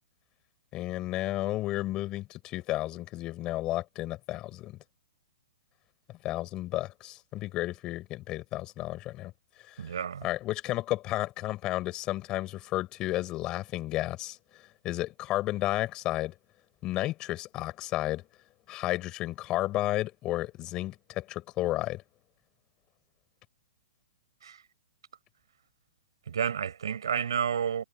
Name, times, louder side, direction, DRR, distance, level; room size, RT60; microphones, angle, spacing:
voice 1, 0.7-4.8 6.1-9.3 9.7-9.8 10.2-14.4 14.8-16.3 16.8-18.2 18.7-22.0, left 16 dB, 30° left, 6.1 m, -32 dB
voice 2, 9.8-10.3 24.4-24.6 26.3-27.8, right 7 dB, 85° right, 6.0 m, -30 dB
hypercardioid pair, 135°, 2 cm